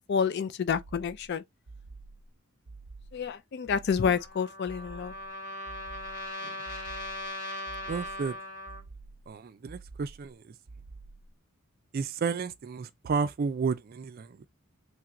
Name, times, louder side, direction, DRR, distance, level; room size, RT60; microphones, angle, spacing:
voice 1, 0.1-1.4 3.1-5.1, left 6 dB, 50° left, 0.3 m, -29 dB
sound 1, 0.7-1.3 1.7-2.3 2.7-3.3 3.7-4.3 4.7-5.3 5.7-6.3 6.7-7.3 7.7-8.3 8.7-9.3 9.7-10.3 10.7-11.3, right 3 dB, 80° right, 0.7 m, -48 dB
Trumpet, 4.1-8.8, left 1 dB, 85° left, 1.7 m, -39 dB
voice 2, 7.9-8.3 9.3-10.4 11.9-14.4, right 5 dB, 40° right, 0.3 m, -32 dB
3.3 x 2.4 x 2.8 m
head